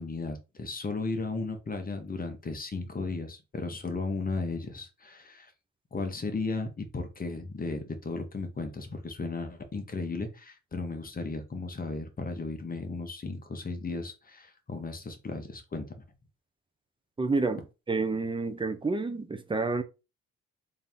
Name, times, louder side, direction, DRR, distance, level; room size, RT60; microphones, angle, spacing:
voice 1, 0.0-5.5 5.9-15.9, left 3 dB, 30° left, 1.0 m, -35 dB
voice 2, 17.2-17.6 17.9-19.8, right 3 dB, 15° right, 0.6 m, -29 dB
3.7 x 2.8 x 3.5 m
cardioid pair, 90°, 30 cm